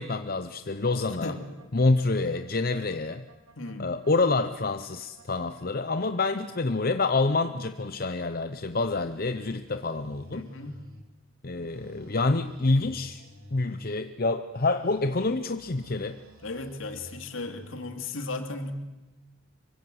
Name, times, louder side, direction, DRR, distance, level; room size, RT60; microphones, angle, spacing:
voice 1, 0.0-1.3 1.7-3.2 3.8-10.5 11.4-13.2 13.5-16.2, left 3 dB, 45° left, 9 dB, 0.8 m, -27 dB
sound 1, 0.8-8.5 8.8-11.0 11.5-14.0 14.5-17.9, right 1 dB, 85° right, 4.3 m, -52 dB
voice 2, 3.6-4.0 10.3-10.7 16.4-18.7, left 2 dB, 70° left, 6 dB, 2.7 m, -36 dB
25.5 x 23.5 x 7.9 m, 1.1 s
head